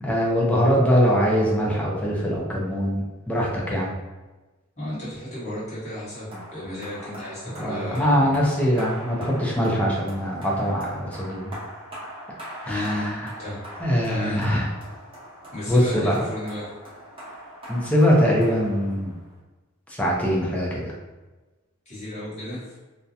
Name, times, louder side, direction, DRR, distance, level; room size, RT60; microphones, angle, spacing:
voice 1, 0.0-3.9 7.6-11.5 12.7-13.2 13.8-14.7 15.7-16.2 17.7-19.1 19.9-20.9, equal, 5° left, -4 dB, 0.4 m, -22 dB
voice 2, 4.8-8.6 12.6-13.7 14.0-14.4 15.5-16.7 21.8-22.7, left 1 dB, 35° left, -11 dB, 1.3 m, -33 dB
sound 1, 6.3-19.3, equal, 25° right, 0.8 m, -41 dB
2.4 x 2.1 x 2.7 m, 1.2 s
head